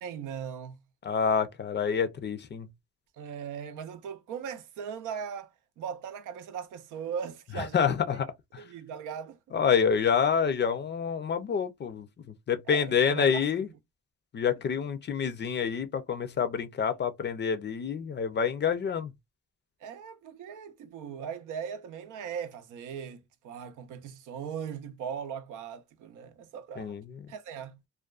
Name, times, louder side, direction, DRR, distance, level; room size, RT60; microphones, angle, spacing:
voice 1, 0.0-0.8 3.2-5.5 5.8-8.2 8.6-9.5 12.7-13.7 19.8-27.0 27.3-27.8, right 7 dB, 85° right, 0.6 m, -39 dB
voice 2, 1.0-2.7 7.6-8.3 8.5-8.6 9.5-12.1 12.5-13.7 14.3-19.1 26.8-27.0, left 7 dB, 35° left, 0.4 m, -27 dB
2.4 x 2.2 x 2.3 m
cardioid pair, 90°, 30 cm